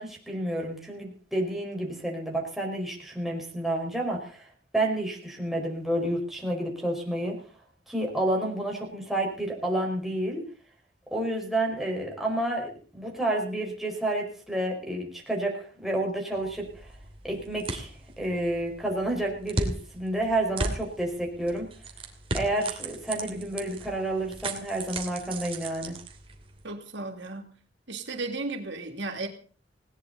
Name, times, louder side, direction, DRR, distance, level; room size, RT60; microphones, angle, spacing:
voice 1, 0.0-4.5 4.7-7.4 7.9-10.4 11.1-16.9 17.2-17.9 18.2-21.7 22.3-25.9, right 1 dB, ahead, -1 dB, 4.9 m, -30 dB
sound 1, 16.3-26.6, right 2 dB, 30° right, 2.9 m, -37 dB
voice 2, 26.6-27.5 27.9-29.3, right 3 dB, 85° right, 3 dB, 3.0 m, -34 dB
19.5 x 18.0 x 4.1 m, 0.41 s
head